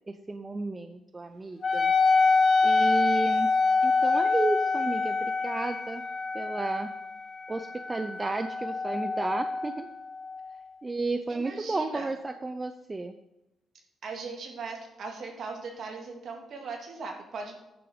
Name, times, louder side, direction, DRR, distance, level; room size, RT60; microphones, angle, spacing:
voice 1, 0.1-1.9 2.6-3.5 3.8-6.0 6.3-6.9 7.5-9.9 10.8-13.1, right 3 dB, 20° right, 9 dB, 0.5 m, -32 dB
Wind instrument woodwind instrument, 1.6-10.6, left 4 dB, 35° left, 0.9 m, -26 dB
voice 2, 11.3-12.1 14.0-17.5, right 4 dB, 60° right, 2 dB, 2.0 m, -39 dB
10.0 x 4.7 x 5.0 m, 0.95 s
cardioid pair, 90°, 0 cm